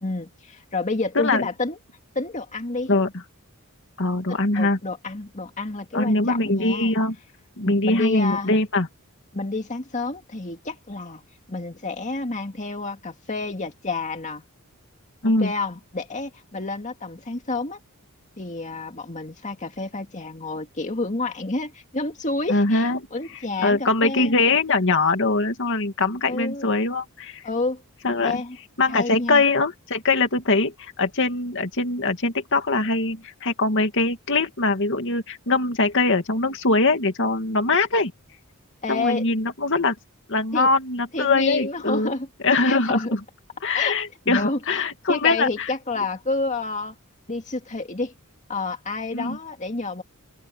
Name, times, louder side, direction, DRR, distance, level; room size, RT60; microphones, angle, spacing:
voice 1, 0.0-1.8 2.2-2.9 4.3-6.9 7.6-8.5 9.3-11.2 11.5-14.4 15.4-17.8 18.4-24.3 26.2-26.6 27.4-27.8 28.2-28.6 28.9-29.4 38.8-39.2 40.5-40.7 41.1-42.3 42.6-43.2 43.7-44.0 44.3-44.8 45.1-46.9 47.3-48.1 48.5-50.0, left 3 dB, 35° left, 2.2 m, -29 dB
voice 2, 1.2-1.5 2.9-3.1 4.0-4.8 5.9-7.1 7.6-8.9 15.2-15.5 22.5-23.0 23.6-27.4 28.0-28.4 28.8-38.1 38.9-40.0 40.3-42.1 42.4-43.2 43.6-45.7 49.1-49.4, left 3 dB, 60° left, 2.4 m, -22 dB
open air
head